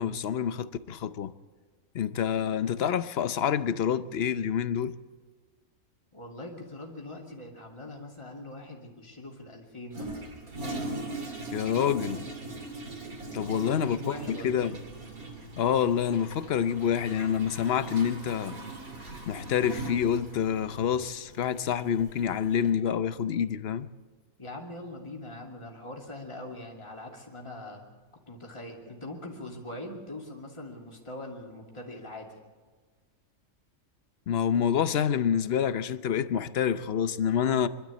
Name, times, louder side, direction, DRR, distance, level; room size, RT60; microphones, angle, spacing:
voice 1, 0.0-1.3 1.9-5.0 11.5-12.2 13.3-14.0 14.3-14.8 15.6-18.6 19.3-23.9 34.3-37.7, left 8 dB, 55° left, 0.9 m, -27 dB
voice 2, 6.1-10.4 13.3-14.8 24.4-27.8 28.3-32.4, left 1 dB, 20° left, 2.7 m, -42 dB
Toilet flush, 9.9-22.7, right 2 dB, 75° right, 3.2 m, -40 dB
25.0 x 12.0 x 8.5 m
omnidirectional pair, 1.5 m